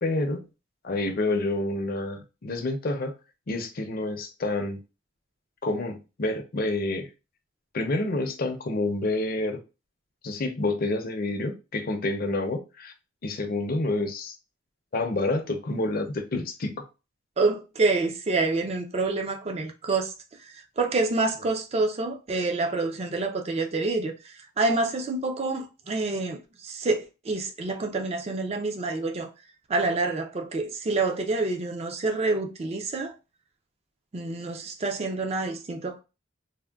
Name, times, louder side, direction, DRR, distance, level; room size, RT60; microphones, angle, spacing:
voice 1, 0.0-0.4 0.8-3.1 3.5-4.8 5.6-7.1 7.7-9.6 10.2-12.9 13.2-14.3 14.9-16.9, left 2 dB, 45° left, 0.5 m, -28 dB
voice 2, 17.4-20.1 20.4-29.3 29.7-33.1 34.1-36.0, right 3 dB, 30° right, 0.4 m, -27 dB
3.5 x 2.1 x 2.3 m
head